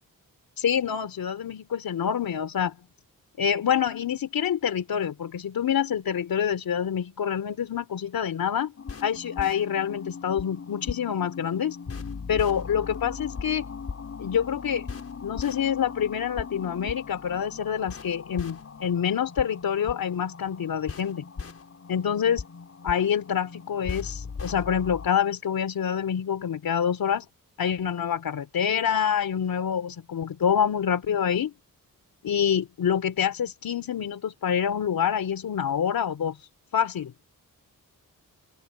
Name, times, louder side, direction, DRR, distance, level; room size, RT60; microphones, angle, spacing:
voice 1, 0.6-2.8 3.4-8.7 9.0-11.8 12.3-13.6 14.2-14.9 15.2-21.3 21.9-22.4 22.8-27.3 27.6-31.5 32.2-36.4 36.7-37.1, left 8 dB, 90° left, 3.6 m, -26 dB
sound 1, 8.8-25.1, left 5 dB, 45° left, 5.9 m, -38 dB
open air
wide cardioid pair, 140°, 34 cm